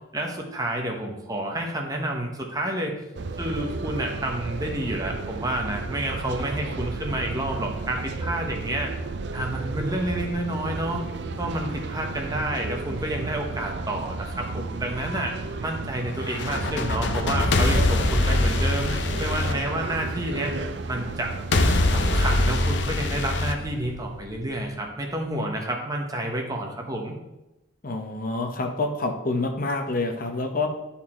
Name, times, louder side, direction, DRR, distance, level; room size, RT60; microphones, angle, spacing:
voice 1, 0.1-3.0 3.4-9.0 9.3-11.0 11.4-15.3 15.6-20.5 20.9-21.3 21.9-27.1, right 1 dB, 20° right, 1 dB, 1.1 m, -29 dB
sound 1, 3.1-22.8, right 3 dB, 65° right, 0.5 m, -33 dB
sound 2, 16.2-20.4 21.5-24.4, left 2 dB, 70° left, 0.7 m, -23 dB
voice 2, 27.8-30.7, left 2 dB, 50° left, 4 dB, 1.0 m, -27 dB
9.8 x 4.3 x 4.4 m, 0.96 s
head